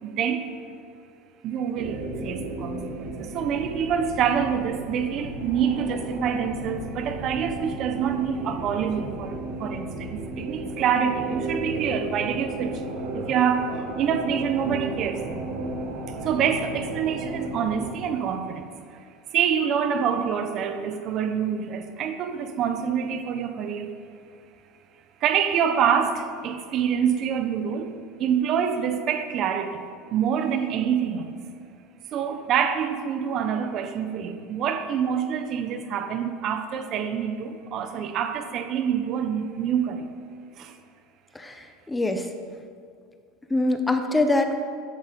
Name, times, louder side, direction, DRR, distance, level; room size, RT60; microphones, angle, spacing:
voice 1, 0.0-0.5 1.4-12.8 13.1-15.2 16.1-18.6 19.3-23.9 25.2-27.9 28.2-29.8 30.1-31.4 32.1-40.1 40.6-40.8, right 8 dB, 45° right, 8 dB, 1.1 m, -26 dB
sound 1, 1.7-17.9, right 2 dB, 85° right, 2.4 m, -34 dB
voice 2, 41.3-42.3 43.5-44.5, left 2 dB, 10° left, 6 dB, 1.1 m, -24 dB
13.5 x 11.0 x 5.3 m, 2.3 s
supercardioid pair, 120°, 0 cm